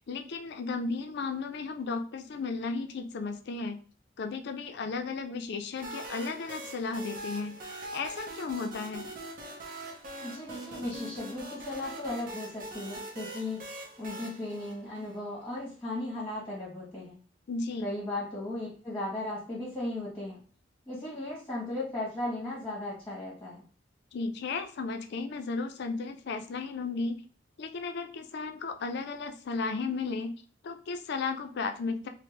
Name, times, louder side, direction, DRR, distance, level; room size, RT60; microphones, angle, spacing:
voice 1, 0.0-3.8 4.2-7.6 7.9-9.1 17.5-17.9 24.1-27.2 27.6-30.3 30.6-32.1, left 4 dB, 60° left, 6 dB, 0.4 m, -34 dB
sound 1, 5.8-15.4, right 1 dB, 50° right, 0.7 m, -42 dB
voice 2, 10.2-13.6 14.0-17.2 17.8-20.4 20.9-23.6, left 1 dB, 10° left, -6 dB, 1.1 m, -36 dB
3.4 x 2.1 x 3.1 m, 0.41 s
head